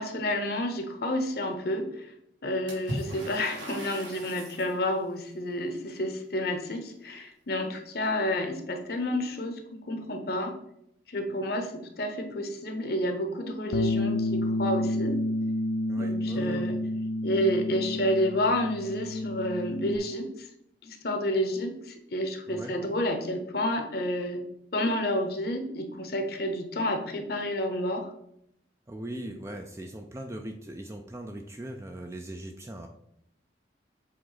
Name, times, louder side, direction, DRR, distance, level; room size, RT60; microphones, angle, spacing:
voice 1, 0.0-2.1 2.4-10.6 11.1-15.2 16.0-16.8 17.2-20.5 20.8-24.4 24.7-28.1, left 1 dB, 55° left, 5 dB, 0.8 m, -30 dB
Water / Splash splatter, 2.7-4.8, equal, 85° right, 2.3 m, -38 dB
Bass guitar, 13.7-20.0, left 1 dB, 80° left, 0.4 m, -30 dB
voice 2, 15.9-16.7 22.5-22.7 28.9-32.9, right 1 dB, 15° right, 4 dB, 0.4 m, -39 dB
7.6 x 3.6 x 4.0 m, 0.77 s
head